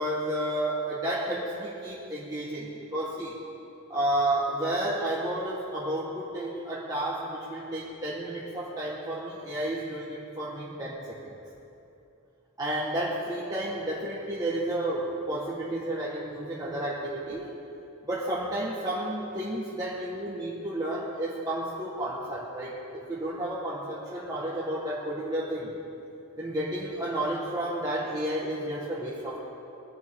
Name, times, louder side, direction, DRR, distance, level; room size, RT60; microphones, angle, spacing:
voice 1, 0.0-3.4 3.9-11.3 12.6-17.5 18.0-25.7 26.4-29.4, right 1 dB, 15° right, -7 dB, 1.5 m, -31 dB
22.0 x 11.0 x 3.7 m, 2.8 s
head